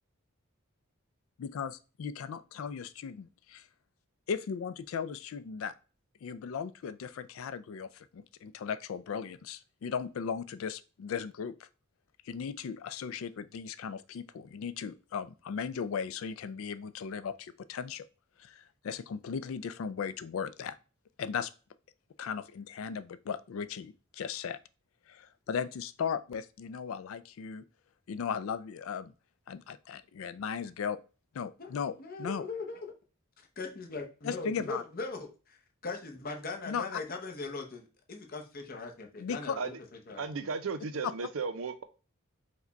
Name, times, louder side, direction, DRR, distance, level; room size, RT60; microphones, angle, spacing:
voice 1, 1.4-3.7 4.3-5.7 6.2-11.7 12.3-18.0 18.4-20.8 21.2-21.5 22.2-24.6 25.1-27.6 28.1-29.1 29.5-31.0 31.3-32.5 34.2-34.8 36.7-37.0 39.2-39.6, left 6 dB, 70° left, 0.3 m, -37 dB
voice 2, 31.6-32.9 33.4-35.3 35.8-39.7 40.1-40.3, left 3 dB, 45° left, 0.8 m, -40 dB
voice 3, 40.2-41.8, right 4 dB, 70° right, 0.5 m, -35 dB
4.9 x 2.3 x 3.9 m
head